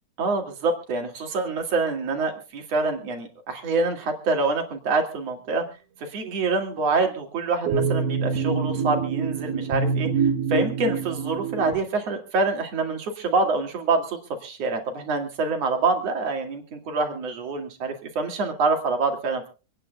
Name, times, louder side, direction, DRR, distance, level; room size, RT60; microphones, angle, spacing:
voice 1, 0.2-5.6 6.0-10.1 10.5-19.5, right 3 dB, 45° right, 4 dB, 3.1 m, -26 dB
sound 1, 7.7-11.8, right 5 dB, 80° right, 3.2 m, -25 dB
27.5 x 10.0 x 2.3 m, 0.34 s
omnidirectional pair, 4.3 m